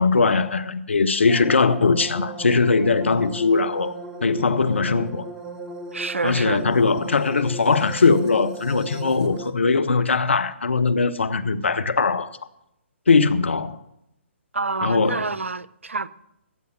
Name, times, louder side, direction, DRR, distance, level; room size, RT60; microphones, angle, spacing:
voice 1, 0.0-3.9 4.2-5.3 6.2-12.3 13.1-13.8 14.8-15.2, left 4 dB, 70° left, 0.8 m, -20 dB
sound 1, 1.3-9.5, right 2 dB, 5° right, 0.9 m, -36 dB
voice 2, 5.9-6.6 14.5-16.1, right 3 dB, 80° right, 0.5 m, -27 dB
15.5 x 7.0 x 6.0 m
figure-of-eight pair, 130°, 7 cm